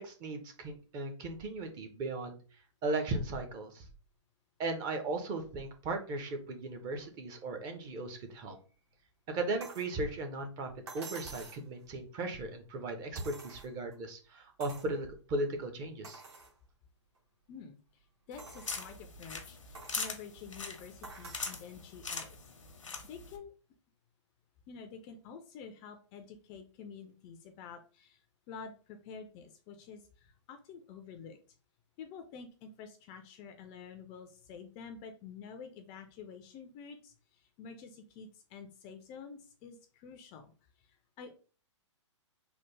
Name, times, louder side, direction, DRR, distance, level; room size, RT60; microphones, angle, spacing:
voice 1, 0.0-2.4 2.8-3.9 4.6-8.5 9.3-16.2, right 2 dB, 25° right, 5 dB, 0.6 m, -37 dB
sound 1, 9.6-9.9 10.9-11.7 13.1-13.9 14.6-14.9 15.4-15.5 16.0-16.5 17.1-17.2 18.4-19.0 19.7-20.0 21.0-21.6 22.9-23.0, right 3 dB, 60° right, 1.3 m, -49 dB
voice 2, 17.5-22.5 23.0-23.5 24.7-31.4 32.0-40.5 40.8-41.3, left 6 dB, 25° left, 7 dB, 0.4 m, -49 dB
sound 2, 18.3-23.4, left 4 dB, 90° left, 0.7 m, -42 dB
3.3 x 2.1 x 3.1 m, 0.37 s
hypercardioid pair, 125°, 16 cm